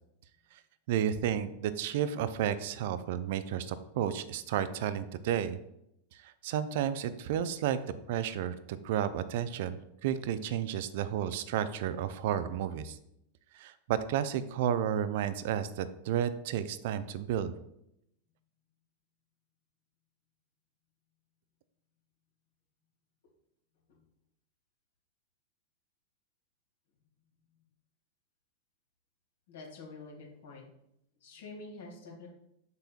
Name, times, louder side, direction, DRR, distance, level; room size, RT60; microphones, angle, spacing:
voice 1, 0.9-5.6 6.1-13.0 13.5-17.5, right 9 dB, 50° right, 13 dB, 0.4 m, -32 dB
voice 2, 29.5-30.7 31.2-32.3, left 3 dB, 60° left, -1 dB, 2.0 m, -47 dB
6.8 x 6.7 x 2.4 m, 0.79 s
figure-of-eight pair, 90°, 0 cm